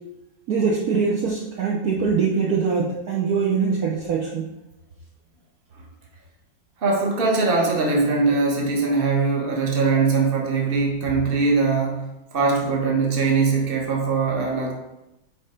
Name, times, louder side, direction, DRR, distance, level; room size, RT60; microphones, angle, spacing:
voice 1, 0.5-4.5, right 5 dB, 60° right, -2 dB, 1.1 m, -23 dB
voice 2, 6.8-12.0 12.3-14.7, right 4 dB, 35° right, 0 dB, 1.1 m, -21 dB
5.4 x 4.1 x 5.0 m, 0.94 s
omnidirectional pair, 2.1 m